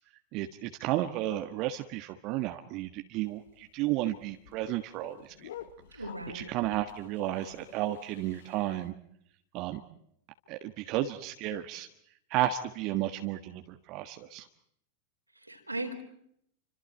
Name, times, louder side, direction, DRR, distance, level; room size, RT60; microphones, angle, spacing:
voice 1, 0.3-5.5 5.9-6.0 6.3-8.9 9.5-9.8 10.5-11.9 12.3-14.5, right 13 dB, 40° right, 6 dB, 1.5 m, -33 dB
sound 1, 3.2-8.9, left 10 dB, 60° left, 1.4 m, -51 dB
voice 2, 5.9-6.5 15.3-15.9, right 1 dB, 85° right, 3 dB, 4.3 m, -38 dB
29.5 x 26.0 x 4.5 m, 0.70 s
figure-of-eight pair, 90°, 0 cm